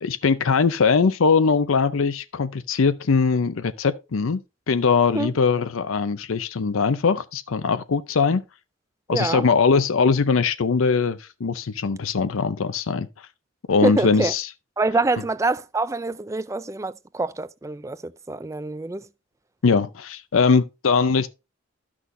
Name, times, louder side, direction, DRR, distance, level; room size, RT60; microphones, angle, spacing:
voice 1, 0.0-4.4 4.7-8.4 9.1-13.3 13.7-14.5 19.6-21.3, left 5 dB, 85° left, 0.6 m, -21 dB
voice 2, 9.1-9.4 13.8-14.3 14.8-19.1, right 2 dB, 15° right, 0.3 m, -25 dB
12.5 x 6.1 x 2.6 m
head